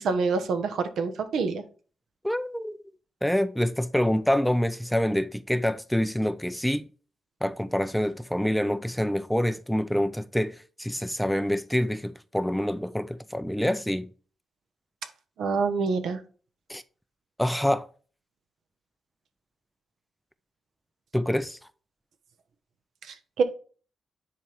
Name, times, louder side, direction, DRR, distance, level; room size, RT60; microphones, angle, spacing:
voice 1, 0.0-1.6 15.4-16.2 23.1-23.4, right 4 dB, 85° right, 1.2 m, -26 dB
voice 2, 2.2-2.8 3.2-6.9 7.4-14.1 16.7-16.8 17.4-17.9 21.1-21.6, equal, ahead, 0.4 m, -26 dB
10.0 x 4.2 x 3.5 m
wide cardioid pair, 145°, 0 cm